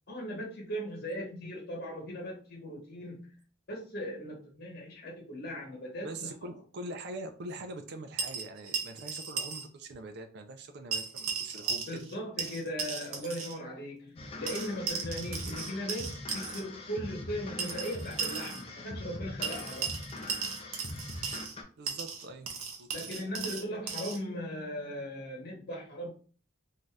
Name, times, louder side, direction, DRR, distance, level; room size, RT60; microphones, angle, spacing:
voice 1, 0.1-3.2 3.7-6.3 11.9-19.9 22.9-26.1, equal, 50° left, 1.0 m, -38 dB
voice 2, 6.0-11.8 21.8-23.1, right 2 dB, 55° right, 0.4 m, -43 dB
sound 1, 8.2-9.7 9.9-10.0 10.9-12.1 12.4-13.6 14.5-16.6 17.6-18.6 19.4-21.6 21.9-24.2, right 5 dB, 85° right, 0.7 m, -36 dB
sound 2, 14.2-21.6, left 2 dB, 25° left, 0.4 m, -42 dB
2.7 x 2.3 x 3.2 m
head